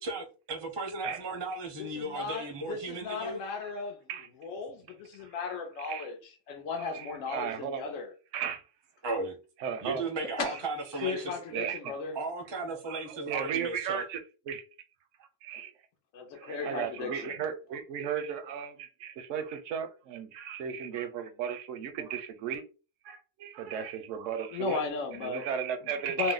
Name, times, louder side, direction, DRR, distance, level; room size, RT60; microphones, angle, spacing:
voice 1, 0.0-3.4 9.0-9.4 9.8-11.4 12.1-14.0, right 2 dB, 30° right, 0.5 m, -35 dB
voice 2, 1.8-4.0 4.4-8.1 10.4-10.6 11.0-12.2 16.1-17.3 24.5-25.4 26.2-26.3, left 5 dB, 85° left, 1.0 m, -36 dB
voice 3, 5.2-5.6 5.8-6.1 6.9-7.8 8.3-8.6 9.6-10.0 10.4-10.5 11.0-11.1 11.5-12.0 12.9-14.2 14.5-14.6 15.4-15.7 16.4-22.6 23.0-24.8 25.1-26.3, right 8 dB, 75° right, 0.9 m, -35 dB
2.7 x 2.0 x 3.8 m
omnidirectional pair, 1.3 m